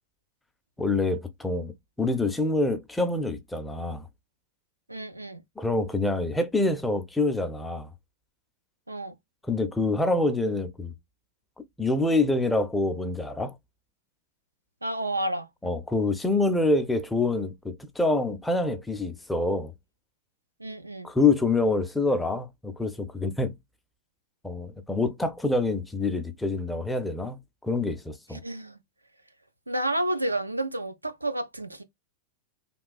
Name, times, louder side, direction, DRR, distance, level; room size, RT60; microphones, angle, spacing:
voice 1, 0.8-4.1 5.6-7.9 9.4-10.9 11.8-13.5 15.6-19.7 21.0-23.6 24.4-28.4, left 2 dB, 5° left, 0.5 m, -26 dB
voice 2, 4.9-5.4 8.9-9.2 14.8-15.5 20.6-21.1 28.4-28.8 29.7-31.8, right 1 dB, 85° right, 0.3 m, -30 dB
2.9 x 2.3 x 2.2 m
figure-of-eight pair, 90°, 0 cm